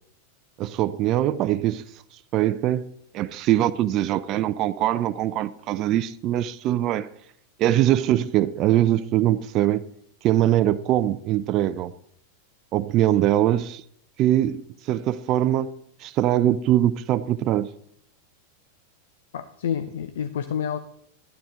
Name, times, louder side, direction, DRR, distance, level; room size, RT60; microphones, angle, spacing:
voice 1, 0.6-1.9 2.3-2.9 3.1-7.1 7.6-9.8 10.2-11.9 12.7-13.8 14.2-15.7 16.0-17.7, right 13 dB, 35° right, 0.4 m, -22 dB
voice 2, 19.3-20.8, left 8 dB, 60° left, 0.6 m, -28 dB
12.0 x 12.0 x 3.8 m
figure-of-eight pair, 90°, 0 cm